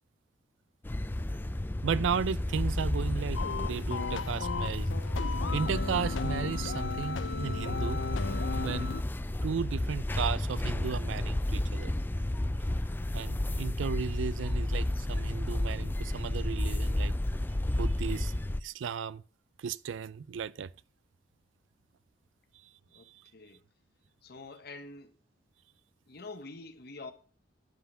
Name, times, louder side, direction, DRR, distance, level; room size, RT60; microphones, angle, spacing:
sound 1, 0.8-18.6, left 1 dB, 10° left, 0.4 m, -32 dB
voice 1, 1.8-4.9 5.5-8.0 8.6-8.9 9.4-11.9 13.1-17.1 17.8-19.2 19.6-20.7 23.1-23.2, right 6 dB, 85° right, 0.4 m, -35 dB
sound 2, 3.3-9.0, left 4 dB, 80° left, 0.5 m, -36 dB
voice 2, 22.9-23.6 24.2-25.1 26.1-27.1, left 3 dB, 60° left, 1.2 m, -46 dB
10.5 x 5.7 x 5.5 m
head